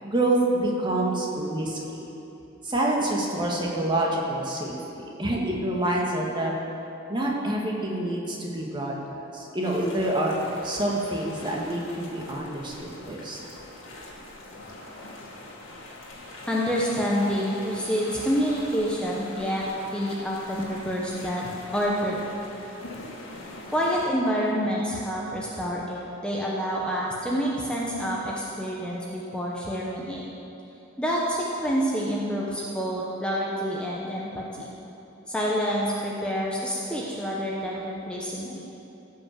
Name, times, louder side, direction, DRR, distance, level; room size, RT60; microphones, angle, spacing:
voice 1, 0.0-1.8 2.6-6.5 7.1-10.3 10.6-13.4, right 1 dB, 25° right, -2 dB, 1.7 m, -27 dB
sound 1, 9.6-24.1, left 2 dB, 80° left, 2.0 m, -42 dB
voice 2, 16.5-19.6 19.9-22.2 23.7-30.2 31.0-34.7 35.3-38.6, equal, 5° left, -5 dB, 1.0 m, -28 dB
15.5 x 5.7 x 7.4 m, 2.9 s
head